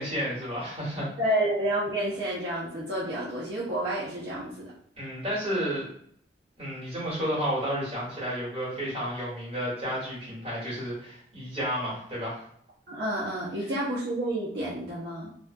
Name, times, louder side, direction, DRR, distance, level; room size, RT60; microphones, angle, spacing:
voice 1, 0.0-1.1 4.9-5.9 6.6-12.4, equal, 35° right, -7 dB, 1.4 m, -31 dB
voice 2, 1.2-4.7 12.9-15.3, right 1 dB, 65° right, -7 dB, 0.6 m, -30 dB
2.4 x 2.2 x 2.5 m, 0.64 s
head